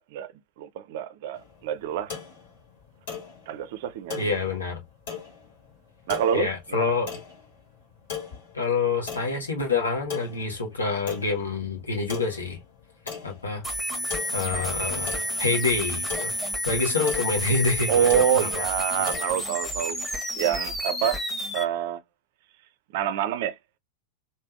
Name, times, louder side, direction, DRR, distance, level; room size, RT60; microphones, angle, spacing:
voice 1, 0.0-2.2 3.5-4.4 6.1-6.9 17.9-20.0 20.4-21.2 21.5-22.0 22.9-23.6, right 9 dB, 50° right, 0.4 m, -27 dB
sound 1, 1.3-20.0, left 7 dB, 55° left, 1.8 m, -41 dB
voice 2, 4.2-4.8 6.3-7.1 8.5-12.6 13.2-13.6 14.3-16.3 16.6-18.5, left 4 dB, 75° left, 1.3 m, -27 dB
sound 2, 13.6-21.6, equal, 5° left, 1.1 m, -30 dB
3.4 x 2.6 x 3.2 m
figure-of-eight pair, 90°, 0 cm